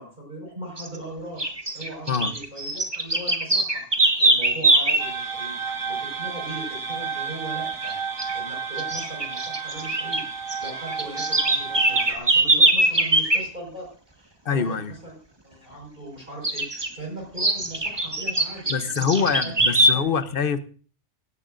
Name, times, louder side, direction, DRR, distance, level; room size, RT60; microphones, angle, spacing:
voice 1, 0.0-1.4 1.7-5.5 5.9-13.9 14.1-15.0 15.4-19.5 19.9-20.1, right 1 dB, 40° right, -2 dB, 5.5 m, -39 dB
sound 1, 0.8-1.0 1.4-5.1 7.7-7.9 8.2-8.3 8.8-10.2 10.5-13.4 16.4-16.9 17.4-20.0, right 2 dB, 20° right, 1.4 m, -22 dB
sound 2, 5.0-12.1, right 6 dB, 90° right, 2.2 m, -32 dB
voice 2, 14.4-14.9 18.7-20.6, left 6 dB, 50° left, 12 dB, 1.0 m, -24 dB
17.5 x 16.5 x 2.6 m, 0.41 s
omnidirectional pair, 1.2 m